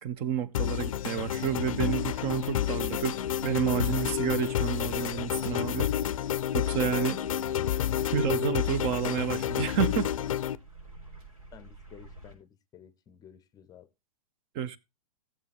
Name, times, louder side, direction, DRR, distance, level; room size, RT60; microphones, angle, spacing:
voice 1, 0.0-3.1 3.4-5.9 6.5-7.2 8.1-10.1 14.5-14.8, right 9 dB, 35° right, 0.7 m, -30 dB
sound 1, 0.5-10.6, left 10 dB, 70° left, 0.5 m, -30 dB
sound 2, 1.4-12.3, right 3 dB, 85° right, 5.1 m, -51 dB
voice 2, 11.5-13.9, left 9 dB, 20° left, 0.6 m, -53 dB
15.0 x 7.5 x 3.4 m
hypercardioid pair, 115°, 18 cm